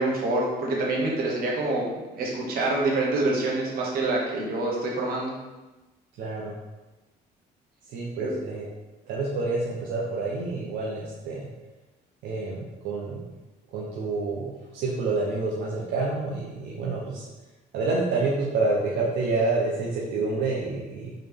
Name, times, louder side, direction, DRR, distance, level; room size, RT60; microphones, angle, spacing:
voice 1, 0.0-5.4 8.2-8.3, right 2 dB, 60° right, -2 dB, 1.2 m, -26 dB
voice 2, 6.2-6.5 7.9-8.7 9.1-11.5 12.2-13.3 13.7-17.2 17.7-21.1, right 3 dB, 85° right, -4 dB, 0.7 m, -28 dB
3.9 x 3.2 x 3.4 m, 1.1 s
cardioid pair, 110°, 17 cm